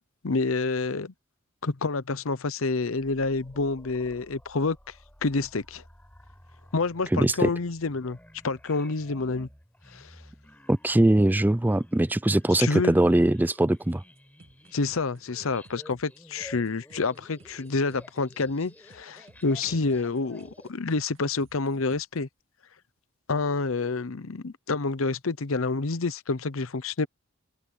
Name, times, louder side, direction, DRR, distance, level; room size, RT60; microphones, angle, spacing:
voice 1, 0.2-1.1 1.6-4.8 5.2-5.8 6.7-8.2 8.4-9.5 9.9-10.1 12.6-12.9 14.7-22.3 23.3-27.1, left 3 dB, 75° left, 0.8 m, -28 dB
sound 1, 3.0-20.7, left 1 dB, 10° left, 5.1 m, -53 dB
voice 2, 7.1-7.5 10.7-14.0, right 1 dB, 10° right, 0.4 m, -21 dB
sound 2, 13.8-22.2, right 2 dB, 70° right, 2.3 m, -57 dB
open air
head